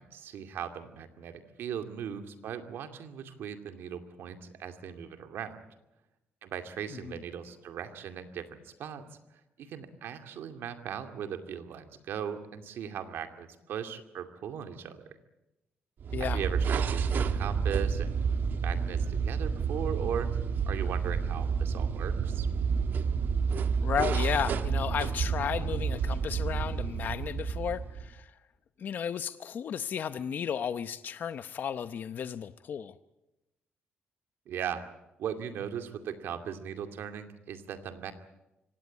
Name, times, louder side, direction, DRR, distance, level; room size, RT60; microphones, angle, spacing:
voice 1, 0.0-5.6 6.4-15.2 16.3-18.2 18.6-20.3 20.7-22.5 34.5-34.9 35.2-38.1, right 8 dB, 75° right, 7 dB, 2.4 m, -38 dB
sound 1, 16.0-28.2, right 6 dB, 60° right, 1.3 m, -30 dB
voice 2, 23.8-28.3 28.8-32.9, left 8 dB, 55° left, 11 dB, 0.8 m, -33 dB
24.5 x 18.0 x 8.5 m, 0.95 s
cardioid pair, 125°, 4 cm